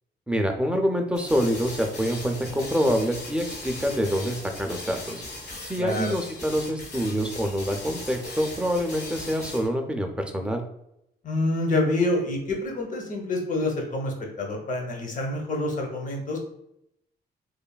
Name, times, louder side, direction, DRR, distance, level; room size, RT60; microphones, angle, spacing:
voice 1, 0.3-5.2 5.6-10.6, equal, 5° right, 4 dB, 0.3 m, -26 dB
sound 1, 1.1-9.7, left 2 dB, 75° left, 1.4 m, -39 dB
voice 2, 5.8-6.1 11.2-16.4, left 2 dB, 50° left, 1 dB, 0.7 m, -27 dB
3.1 x 2.1 x 2.2 m, 0.78 s
cardioid pair, 115°, 17 cm